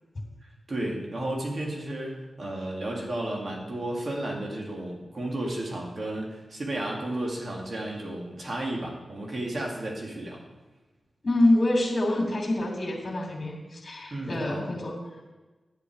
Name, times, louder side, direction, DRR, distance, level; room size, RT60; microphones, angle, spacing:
voice 1, 0.4-10.4 14.1-14.7, right 1 dB, 55° right, -1 dB, 2.7 m, -33 dB
voice 2, 11.2-14.9, left 1 dB, 45° left, 0 dB, 2.8 m, -26 dB
11.0 x 7.9 x 5.0 m, 1.2 s
cardioid pair, 50°, 0 cm